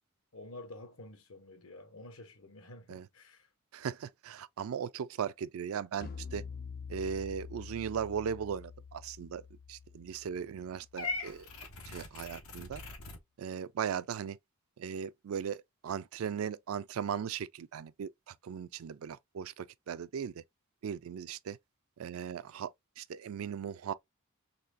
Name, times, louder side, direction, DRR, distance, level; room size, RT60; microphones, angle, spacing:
voice 1, 0.3-3.5, left 2 dB, 70° left, 1.0 m, -50 dB
voice 2, 3.7-6.4 6.9-9.4 9.7-11.5 11.9-12.8 13.4-14.4 14.8-20.4 20.8-21.6 22.0-22.7 23.0-23.9, right 7 dB, 75° right, 0.4 m, -38 dB
sound 1, 6.0-11.4, left 5 dB, 45° left, 0.4 m, -47 dB
Purr / Meow, 11.0-13.2, left 3 dB, 90° left, 1.1 m, -40 dB
4.1 x 2.8 x 2.5 m
head